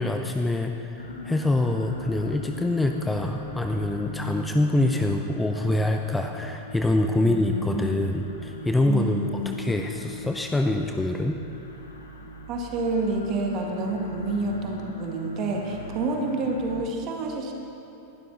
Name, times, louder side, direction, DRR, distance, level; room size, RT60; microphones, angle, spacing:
voice 1, 0.0-11.4, left 2 dB, 10° left, 4 dB, 0.7 m, -25 dB
sound 1, 1.0-16.8, left 2 dB, 75° left, 1.3 m, -39 dB
voice 2, 7.2-8.1 8.8-9.6 12.5-17.5, right 3 dB, 35° right, 1 dB, 2.0 m, -29 dB
19.5 x 12.5 x 4.0 m, 2.9 s
figure-of-eight pair, 90°, 0 cm